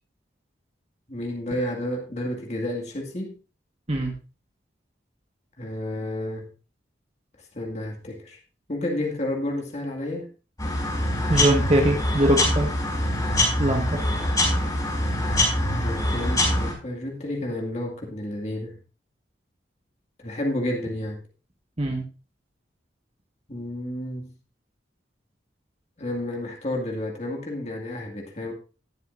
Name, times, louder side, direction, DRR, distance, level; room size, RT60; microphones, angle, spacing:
voice 1, 1.1-3.4 5.6-6.5 7.5-8.4 8.7-10.3 15.7-18.8 20.2-21.2 23.5-24.3 26.0-28.5, left 1 dB, 35° left, 0 dB, 2.1 m, -31 dB
sound 1, 10.6-16.7, left 1 dB, 20° left, 5.0 m, -24 dB
voice 2, 11.3-12.7 13.6-14.0 21.8-22.0, right 1 dB, 35° right, 2 dB, 1.5 m, -22 dB
19.0 x 7.7 x 2.6 m, 0.32 s
head